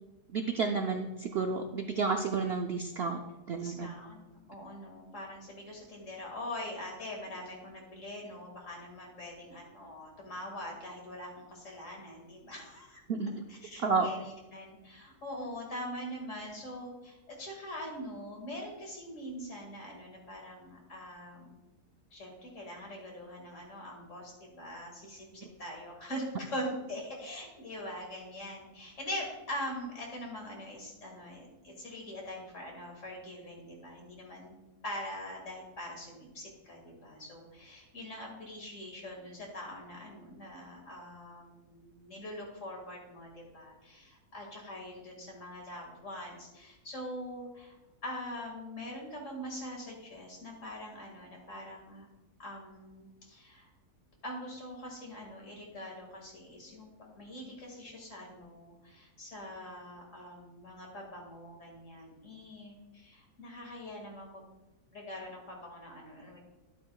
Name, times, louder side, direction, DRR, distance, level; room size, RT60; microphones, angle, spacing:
voice 1, 0.3-3.2 3.5-3.9 13.1-13.3 13.8-14.1 25.4-25.5, right 4 dB, 90° right, 4 dB, 0.5 m, -31 dB
voice 2, 3.6-4.2 4.5-13.0 13.5-21.6 22.1-34.5 34.8-47.8 48.0-52.1 52.4-53.7 54.2-56.9 57.2-64.4 64.9-66.4, left 1 dB, 50° left, 0 dB, 2.3 m, -43 dB
11.5 x 8.4 x 2.3 m, 1.1 s
omnidirectional pair, 1.7 m